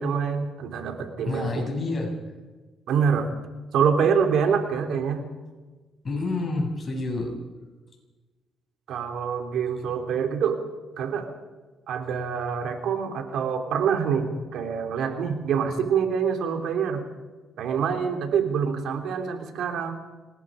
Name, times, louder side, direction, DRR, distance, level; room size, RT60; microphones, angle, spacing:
voice 1, 0.0-1.6 2.9-3.3 3.7-5.2 8.9-10.6 11.0-11.3 11.9-17.0 17.6-19.9, right 6 dB, 75° right, 5 dB, 3.2 m, -25 dB
voice 2, 1.3-2.1 6.0-7.3, left 2 dB, 40° left, 1 dB, 7.4 m, -28 dB
26.5 x 19.5 x 5.2 m, 1.3 s
cardioid pair, 90°, 0 cm